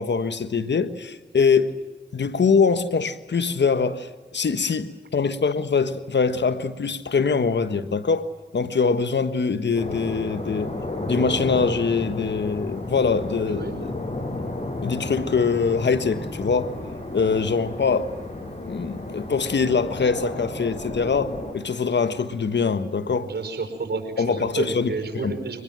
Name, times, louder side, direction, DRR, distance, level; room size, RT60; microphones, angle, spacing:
voice 1, 0.0-1.7 2.1-4.1 4.3-8.3 8.5-10.7 11.0-13.9 14.8-16.7 17.1-18.1 18.6-23.3 24.2-24.9 25.2-25.3, left 5 dB, 65° left, 1.4 m, -23 dB
sound 1, 9.8-21.5, left 2 dB, 35° left, 7.2 m, -32 dB
voice 2, 13.5-13.8 18.9-19.0 23.2-25.6, right 4 dB, 60° right, 5.4 m, -30 dB
23.5 x 21.0 x 7.6 m
cardioid pair, 40°, 19 cm